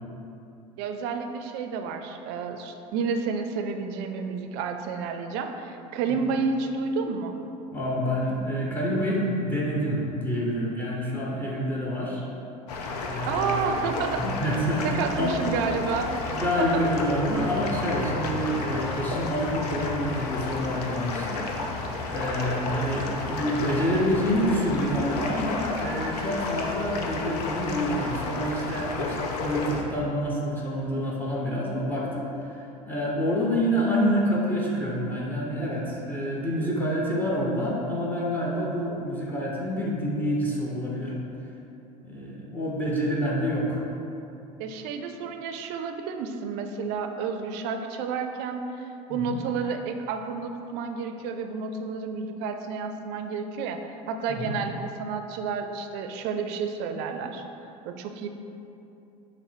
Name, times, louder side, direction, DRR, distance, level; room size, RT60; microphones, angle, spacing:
voice 1, 0.8-7.4 13.3-14.2 14.8-16.1 16.6-16.8 44.6-48.6 49.1-57.4 57.9-58.3, right 5 dB, 60° right, 6 dB, 0.4 m, -30 dB
voice 2, 7.7-12.2 13.0-13.8 14.2-15.4 16.2-21.5 22.1-41.2 42.0-43.8 49.1-49.4 54.4-54.5, equal, 10° left, -4 dB, 0.8 m, -27 dB
sound 1, 12.7-29.8, left 3 dB, 80° left, 0.5 m, -32 dB
5.5 x 2.1 x 4.5 m, 2.8 s
hypercardioid pair, 90°, 20 cm